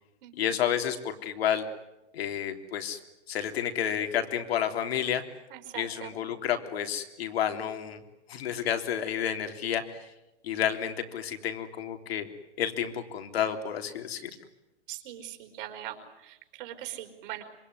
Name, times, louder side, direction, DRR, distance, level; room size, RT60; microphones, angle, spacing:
voice 1, 0.4-1.6 2.1-3.0 3.3-5.2 5.7-8.0 8.3-10.0 10.4-12.3 12.6-14.3, left 9 dB, 60° left, 6 dB, 3.5 m, -30 dB
voice 2, 5.5-6.1 14.9-16.0 16.2-17.4, right 13 dB, 50° right, 5 dB, 4.5 m, -41 dB
26.5 x 23.0 x 9.7 m, 0.96 s
hypercardioid pair, 155°, 34 cm